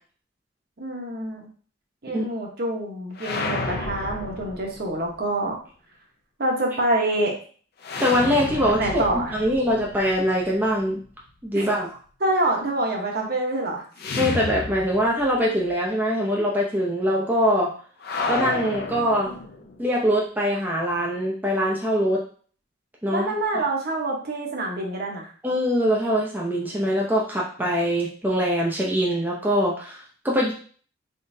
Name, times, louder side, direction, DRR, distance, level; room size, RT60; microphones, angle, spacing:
voice 1, 0.8-1.5 2.0-5.5 6.4-7.3 8.8-9.3 11.5-11.7 12.2-13.8 23.1-25.3, right 1 dB, 50° right, 0 dB, 1.0 m, -26 dB
sound 1, 3.1-5.1 7.8-10.8 14.0-15.4 15.6-15.7 18.0-19.8, left 3 dB, 50° left, 0.5 m, -31 dB
voice 2, 8.0-9.0 9.3-11.0 11.4-11.9 14.2-17.7 18.3-19.3 19.8-22.2 23.0-23.6 25.4-30.5, equal, 10° right, -3 dB, 0.5 m, -23 dB
3.7 x 3.7 x 2.7 m, 0.43 s
head